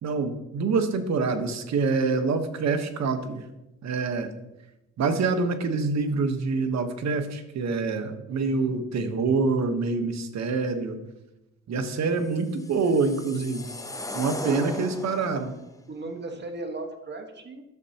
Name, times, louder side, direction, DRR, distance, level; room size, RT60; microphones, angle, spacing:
voice 1, 0.0-3.4 3.8-4.3 5.0-11.0 11.7-13.7 14.1-15.5, right 4 dB, 60° right, 7 dB, 1.2 m, -26 dB
voice 2, 8.3-8.8 14.4-14.8 15.9-17.6, right 2 dB, 35° right, 4 dB, 1.4 m, -37 dB
sound 1, 12.3-15.5, left 2 dB, 10° left, 0.7 m, -37 dB
12.0 x 6.7 x 2.9 m, 0.94 s
cardioid pair, 90°, 30 cm